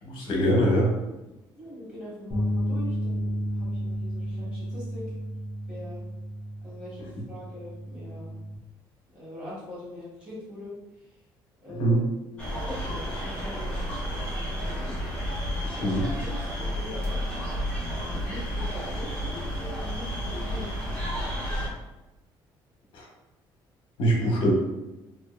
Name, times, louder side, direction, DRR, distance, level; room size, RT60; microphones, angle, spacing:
voice 1, 0.0-0.9 11.8-12.0 15.8-16.1 22.9-23.1 24.0-24.5, right 1 dB, 70° left, -2 dB, 0.9 m, -23 dB
voice 2, 1.5-5.0 5.7-6.0 6.6-8.3 9.1-10.7 11.6-14.9 16.0-17.2 17.9-21.0, left 1 dB, 15° right, -10 dB, 1.5 m, -42 dB
sound 1, 2.3-8.6, equal, 40° left, 0.5 m, -32 dB
sound 2, 12.4-21.7, equal, 10° left, 0.9 m, -31 dB
2.6 x 2.5 x 2.4 m, 1.0 s
cardioid pair, 145°, 9 cm